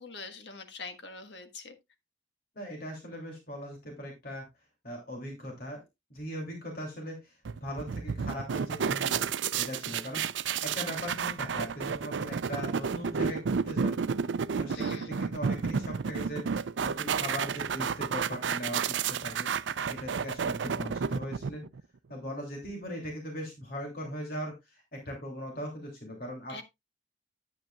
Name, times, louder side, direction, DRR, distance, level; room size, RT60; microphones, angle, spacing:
voice 1, 0.0-1.8 14.7-15.2 26.5-26.6, left 4 dB, 75° left, 1.5 m, -44 dB
voice 2, 2.5-4.5 4.8-5.8 6.1-7.3 7.6-9.3 9.6-14.0 14.6-19.5 19.9-21.6 22.1-26.6, equal, 55° left, 2.9 m, -39 dB
sound 1, 7.5-21.8, right 6 dB, 85° right, 0.5 m, -31 dB
11.0 x 8.7 x 2.4 m
head